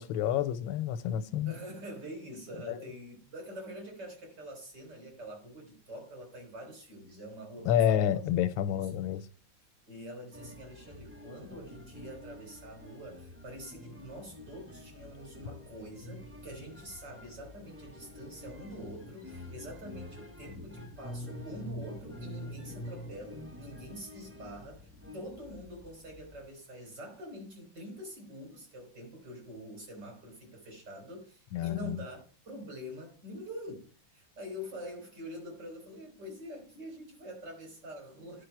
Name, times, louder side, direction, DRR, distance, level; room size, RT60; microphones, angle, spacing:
voice 1, 0.0-1.5 2.7-2.8 7.7-9.3 31.5-32.0, left 10 dB, 85° left, 1.4 m, -29 dB
voice 2, 1.4-8.2 8.7-8.9 9.9-38.4, equal, 55° right, 4.3 m, -45 dB
sound 1, 10.3-26.5, left 1 dB, 15° right, 0.5 m, -47 dB
10.0 x 5.2 x 4.5 m
omnidirectional pair, 2.1 m